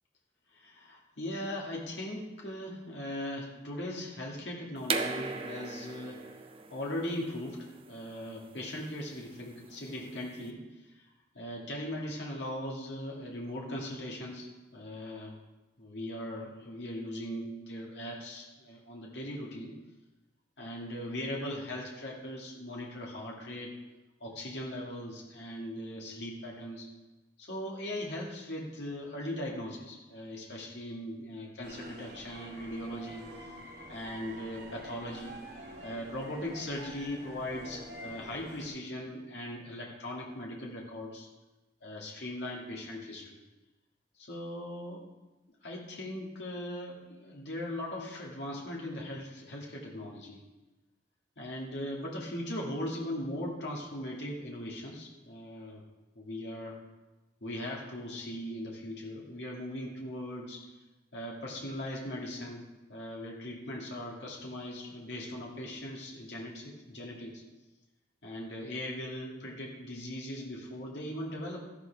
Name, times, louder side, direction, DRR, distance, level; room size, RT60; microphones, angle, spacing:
voice 1, 0.5-6.2 6.7-10.6 11.3-15.4 15.8-19.7 20.6-23.7 24.2-26.9 27.4-33.3 33.9-35.3 35.8-41.3 41.8-43.4 44.2-45.0 45.6-50.4 51.4-55.8 56.2-56.8 57.4-60.6 61.1-62.6 62.9-67.4 68.2-71.6, left 1 dB, 80° left, -2 dB, 2.2 m, -39 dB
sound 1, 4.8-10.4, right 4 dB, 30° right, 0.7 m, -38 dB
sound 2, 31.6-38.7, equal, 80° right, 3.5 m, -47 dB
13.5 x 11.0 x 3.5 m, 1.1 s
head